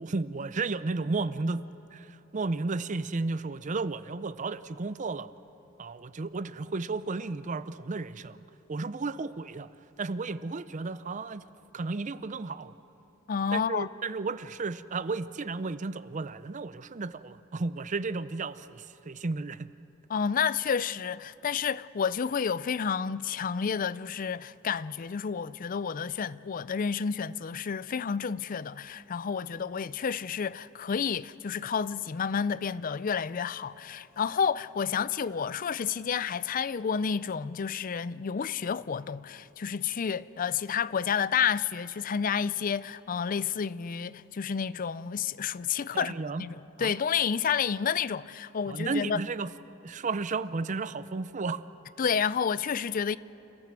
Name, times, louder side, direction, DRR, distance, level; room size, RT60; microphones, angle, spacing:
voice 1, 0.0-1.6 1.9-5.3 5.8-8.4 8.7-9.7 10.0-11.4 11.7-12.7 13.5-19.7 45.9-46.4 46.8-46.9 48.7-49.5 49.8-51.6, right 3 dB, 35° right, 0.5 m, -33 dB
voice 2, 13.3-13.9 20.1-49.2 52.0-53.2, left 6 dB, 40° left, 0.4 m, -30 dB
29.0 x 14.0 x 7.5 m
head